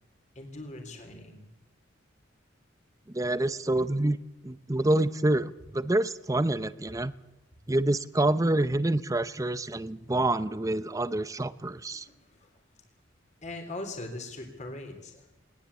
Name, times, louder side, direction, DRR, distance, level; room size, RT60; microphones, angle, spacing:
voice 1, 0.4-1.5 7.7-7.8 11.9-12.5 13.4-15.3, left 2 dB, 40° left, 4 dB, 3.6 m, -41 dB
voice 2, 3.1-4.2 4.4-7.1 7.7-12.1, right 1 dB, 15° right, 14 dB, 0.7 m, -27 dB
20.5 x 19.5 x 8.4 m, 0.91 s
head